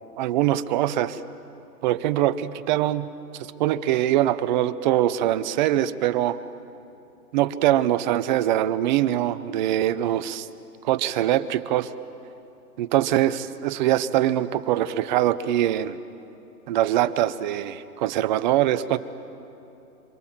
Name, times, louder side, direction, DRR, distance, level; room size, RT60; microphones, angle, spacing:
voice 1, 0.2-1.2 1.8-3.1 3.6-6.4 7.3-10.5 10.8-11.9 12.8-16.0 16.7-19.0, right 13 dB, 30° right, 14 dB, 0.7 m, -23 dB
27.5 x 25.0 x 7.3 m, 2.9 s
hypercardioid pair, 140°, 47 cm